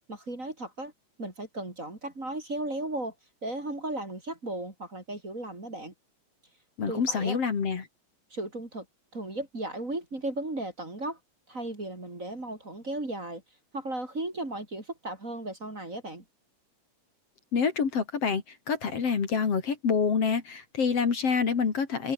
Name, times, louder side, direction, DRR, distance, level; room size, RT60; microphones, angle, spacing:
voice 1, 0.1-0.9 1.2-3.1 3.4-5.9 6.9-7.4 8.3-8.9 9.1-11.2 11.5-13.4 13.7-16.2, right 2 dB, 25° right, 4.2 m, -35 dB
voice 2, 6.8-7.9 17.5-22.1, left 6 dB, 55° left, 3.6 m, -27 dB
omnidirectional pair, 3.4 m